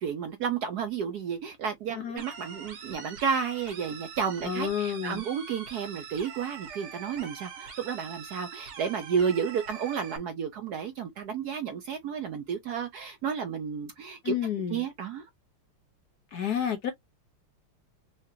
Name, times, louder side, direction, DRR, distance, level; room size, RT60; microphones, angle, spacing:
voice 1, 0.0-14.4 14.7-15.3, right 7 dB, 65° right, 1.0 m, -32 dB
sound 1, 2.2-10.2, right 6 dB, 90° right, 2.1 m, -44 dB
voice 2, 4.4-5.2 14.2-14.8 16.3-16.9, left 8 dB, 65° left, 1.1 m, -30 dB
5.0 x 2.9 x 2.7 m
omnidirectional pair, 2.3 m